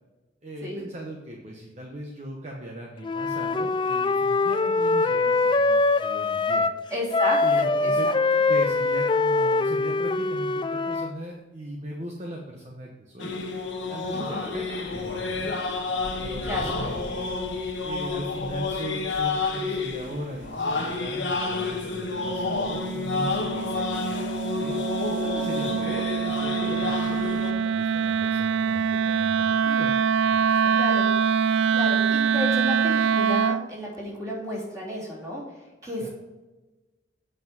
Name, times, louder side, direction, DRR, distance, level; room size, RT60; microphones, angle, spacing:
voice 1, 0.4-6.6 7.4-8.1 8.5-13.3 13.9-15.5 16.1-17.3 17.8-24.8 25.2-29.9 30.2-30.8 35.8-36.1, equal, 35° right, -1 dB, 1.0 m, -38 dB
Wind instrument woodwind instrument, 3.0-6.8 7.1-11.1, left 3 dB, 25° left, 0.3 m, -23 dB
voice 2, 6.9-8.1 14.1-14.5 16.4-16.7 23.6-23.7 25.6-25.9 30.7-31.1 31.7-35.4 35.8-36.1, left 1 dB, 20° right, -6 dB, 3.3 m, -32 dB
sound 1, 13.2-27.5, left 3 dB, 85° left, 1.4 m, -30 dB
Wind instrument woodwind instrument 2, 22.2-33.7, right 6 dB, 85° right, 0.3 m, -24 dB
8.3 x 5.9 x 5.9 m, 1.2 s
head